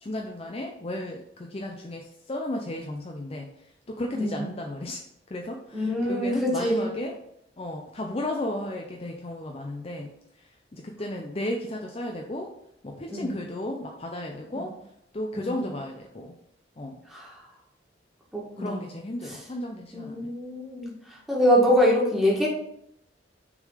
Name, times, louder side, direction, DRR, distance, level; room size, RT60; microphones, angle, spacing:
voice 1, 0.0-3.5 3.9-5.0 5.3-7.2 7.6-10.1 10.7-12.5 12.8-14.7 15.1-16.3 16.8-16.9 18.6-20.3, left 1 dB, 30° left, 1 dB, 0.6 m, -34 dB
voice 2, 4.1-4.5 5.7-6.9 13.1-13.3 14.5-14.6 15.4-15.6 17.1-17.3 18.3-18.8 19.2-19.4 19.9-20.9 21.3-22.5, equal, ahead, -4 dB, 1.8 m, -24 dB
6.2 x 3.9 x 4.9 m, 0.76 s
head